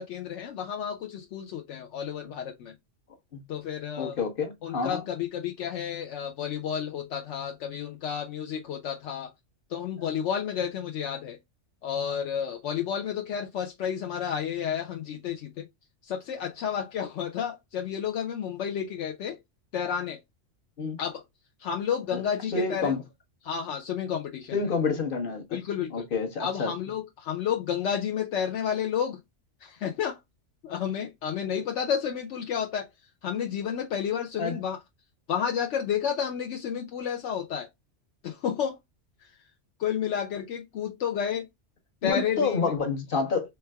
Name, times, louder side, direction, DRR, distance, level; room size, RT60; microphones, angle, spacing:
voice 1, 0.0-2.7 3.5-4.2 4.6-9.3 9.7-11.4 11.8-15.6 16.0-19.4 19.7-20.2 21.0-21.2 21.6-23.0 23.4-24.6 25.5-26.0 26.4-29.2 29.6-30.2 30.6-32.9 33.2-34.8 35.3-37.7 38.2-38.8 39.8-41.5 42.0-42.7, left 8 dB, 75° left, 0.9 m, -31 dB
voice 2, 4.0-5.0 20.8-21.0 22.1-22.2 22.5-23.0 24.5-25.6 25.9-26.7 34.4-34.6 42.0-43.6, left 4 dB, 50° left, 1.2 m, -28 dB
4.4 x 3.2 x 2.2 m
omnidirectional pair, 1.2 m